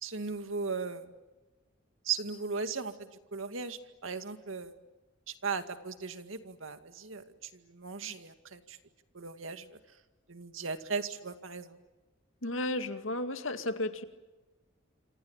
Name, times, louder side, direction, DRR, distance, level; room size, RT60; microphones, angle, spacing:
voice 1, 0.0-1.1 2.0-4.7 5.4-8.8 9.1-9.8 10.3-11.8, right 5 dB, 80° right, 8 dB, 2.2 m, -37 dB
voice 2, 12.4-14.0, left 2 dB, 75° left, 8 dB, 2.2 m, -33 dB
28.5 x 26.5 x 7.4 m, 1.2 s
head